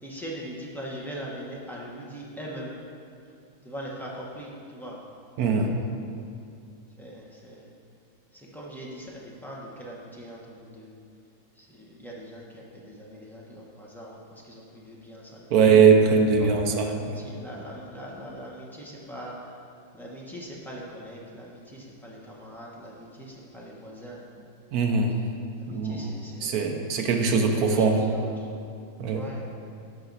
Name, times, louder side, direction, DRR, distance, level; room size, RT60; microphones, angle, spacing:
voice 1, 0.0-2.7 3.6-5.0 5.4-5.9 7.0-7.7 8.3-11.0 11.6-15.6 16.4-19.4 19.9-24.2 25.6-26.6 27.5-28.5 29.1-29.4, equal, ahead, -5 dB, 0.5 m, -41 dB
voice 2, 5.4-5.7 15.5-17.1 24.7-25.3 25.7-26.1 26.4-28.1 29.0-29.3, right 5 dB, 70° right, 3 dB, 0.9 m, -21 dB
11.0 x 5.8 x 4.0 m, 2.5 s
omnidirectional pair, 2.1 m